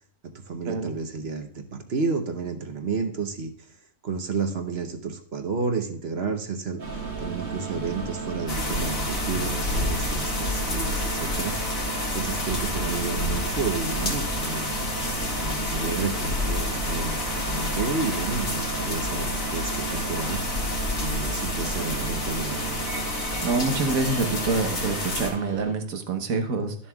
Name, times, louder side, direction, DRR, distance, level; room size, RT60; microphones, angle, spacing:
voice 1, 0.3-3.5 4.0-6.8 7.2-11.6 12.1-14.7 15.4-17.2 17.4-20.4 20.9-22.6, right 4 dB, 55° right, 6 dB, 1.1 m, -31 dB
sound 1, 6.8-25.7, right 4 dB, 70° right, 2.6 m, -34 dB
sound 2, 8.5-25.3, left 2 dB, 75° left, 2.4 m, -29 dB
voice 2, 23.4-26.8, right 3 dB, 85° right, 5 dB, 1.5 m, -26 dB
12.5 x 7.0 x 2.3 m, 0.62 s
omnidirectional pair, 1.4 m